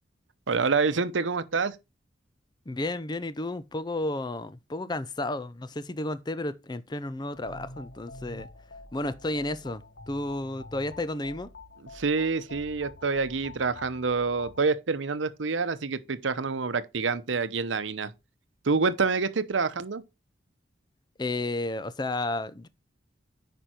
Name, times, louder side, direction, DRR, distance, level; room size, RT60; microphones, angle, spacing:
voice 1, 0.5-1.8 11.9-18.1 18.6-20.0, right 4 dB, 90° right, 0.8 m, -27 dB
voice 2, 2.7-8.5 8.9-11.5 21.2-22.7, left 2 dB, 25° left, 0.5 m, -32 dB
sound 1, 7.3-14.6, left 2 dB, 65° left, 1.1 m, -47 dB
9.2 x 5.2 x 4.4 m
head